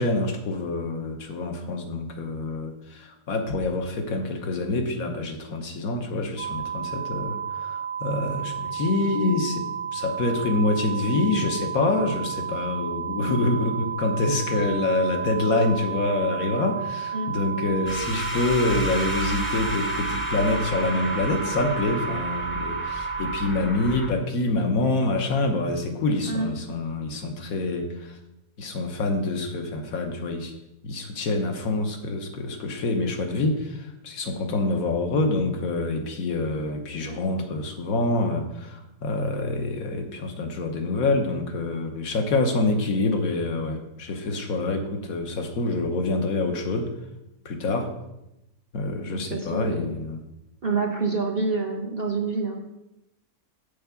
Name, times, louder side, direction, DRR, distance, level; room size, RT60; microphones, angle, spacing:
voice 1, 0.0-9.7 9.9-28.2 28.6-30.5 30.8-46.9 47.4-47.9 48.7-50.2, left 2 dB, 65° left, 5 dB, 1.5 m, -26 dB
sound 1, 6.4-23.5, right 7 dB, 70° right, 1.3 m, -32 dB
sound 2, 17.9-24.1, left 1 dB, 10° left, 0.8 m, -32 dB
voice 2, 49.1-49.9 50.6-52.6, right 4 dB, 45° right, 3 dB, 0.9 m, -27 dB
7.1 x 4.6 x 7.0 m, 0.89 s
omnidirectional pair, 1.6 m